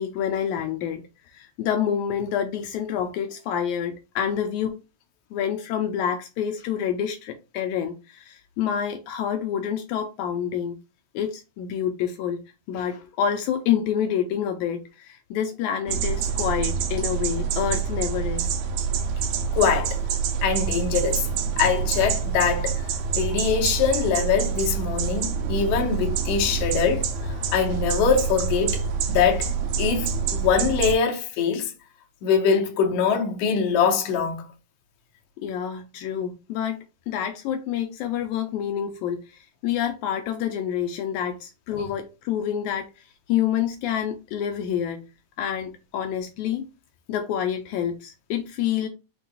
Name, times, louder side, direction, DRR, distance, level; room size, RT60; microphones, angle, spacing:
voice 1, 0.0-4.7 5.3-10.8 11.1-12.4 12.7-18.5 35.4-45.0 45.4-46.7 47.1-48.9, left 9 dB, 90° left, 1.7 m, -28 dB
sound 1, 15.9-30.9, right 6 dB, 90° right, 2.5 m, -26 dB
voice 2, 19.5-20.0 20.4-21.3 21.6-22.8 23.1-27.1 27.5-28.8 29.1-29.5 29.8-31.7 32.2-34.4 41.7-41.8, left 6 dB, 70° left, 1.6 m, -23 dB
5.7 x 2.2 x 3.9 m
omnidirectional pair, 4.0 m